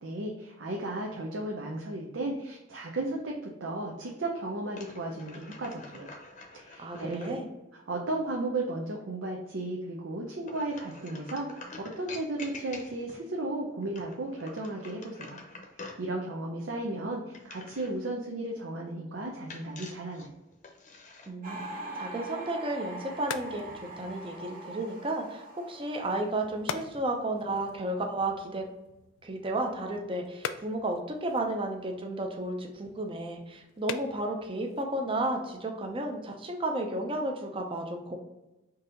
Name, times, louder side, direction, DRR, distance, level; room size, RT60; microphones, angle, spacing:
voice 1, 0.0-3.3 3.6-6.2 6.5-7.3 7.7-15.4 16.0-20.3, right 2 dB, 85° right, -1 dB, 0.6 m, -35 dB
sound 1, 4.7-7.4 10.4-13.2 13.8-16.1 17.3-18.0 19.5-21.3, left 3 dB, 40° left, 0.7 m, -47 dB
voice 2, 6.8-7.5 21.3-21.6 22.0-23.6 24.0-28.6 29.2-38.2, right 2 dB, 30° right, 2 dB, 0.6 m, -33 dB
sound 2, 21.4-27.3 27.5-28.0, right 1 dB, 45° right, 1.1 m, -43 dB
sound 3, 22.7-36.2, left 7 dB, 90° left, 0.3 m, -45 dB
3.9 x 2.8 x 3.8 m, 0.98 s
head